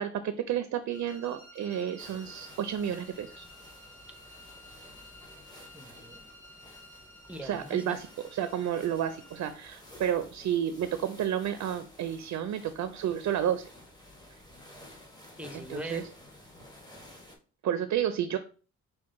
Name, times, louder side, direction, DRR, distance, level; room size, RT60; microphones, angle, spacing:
voice 1, 0.0-3.5 7.4-8.1 8.3-13.7 15.5-16.0 17.6-18.4, right 10 dB, 70° right, 11 dB, 0.5 m, -31 dB
sound 1, 0.9-9.6, left 1 dB, 45° left, 2.5 m, -53 dB
sound 2, 2.0-17.4, left 1 dB, 15° left, 1.2 m, -53 dB
voice 2, 5.7-6.3 7.3-8.0 15.0-16.1, right 1 dB, 5° right, 7 dB, 0.6 m, -41 dB
6.0 x 2.2 x 3.7 m, 0.37 s
cardioid pair, 90°, 30 cm